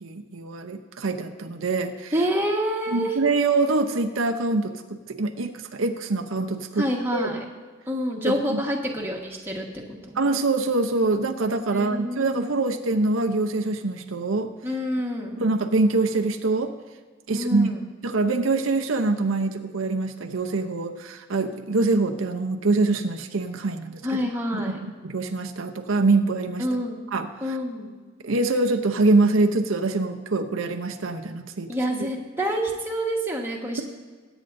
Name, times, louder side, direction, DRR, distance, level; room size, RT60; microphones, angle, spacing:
voice 1, 0.0-2.1 2.9-7.2 8.2-8.6 10.2-14.5 15.4-16.7 17.3-17.7 18.0-24.0 24.5-24.8 25.0-26.7 27.1-27.3 28.2-31.7, right 3 dB, 85° right, 5 dB, 0.8 m, -24 dB
voice 2, 2.1-3.2 6.8-7.4 7.9-10.3 11.7-12.6 14.6-15.4 17.3-17.8 24.0-24.8 26.6-27.0 27.4-28.0 31.7-33.8, equal, 10° right, -1 dB, 1.4 m, -27 dB
21.5 x 9.0 x 2.7 m, 1.4 s
head